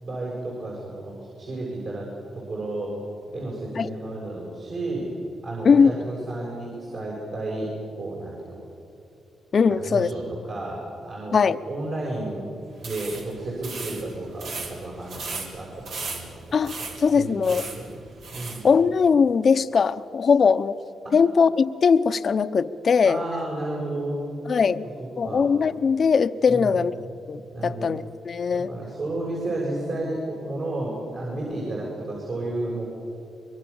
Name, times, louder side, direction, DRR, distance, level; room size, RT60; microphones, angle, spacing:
voice 1, 0.0-2.1 2.3-2.9 3.3-5.1 5.4-7.7 8.0-8.6 9.7-11.4 11.7-12.4 12.8-16.3 16.8-17.9 18.3-18.7 21.0-21.2 23.0-24.2 24.6-24.7 25.0-25.5 26.5-26.8 27.5-28.0 28.5-32.9, right 2 dB, 55° right, -4 dB, 7.1 m, -32 dB
voice 2, 9.5-10.1 11.3-11.6 16.5-17.6 18.6-20.8 21.1-23.2 24.5-24.9 25.2-26.9 27.3-28.7, left 5 dB, 55° left, 12 dB, 0.9 m, -20 dB
sound 1, 12.8-18.7, right 3 dB, 80° right, 4.4 m, -37 dB
24.5 x 23.0 x 7.2 m, 2.7 s
cardioid pair, 80°, 0 cm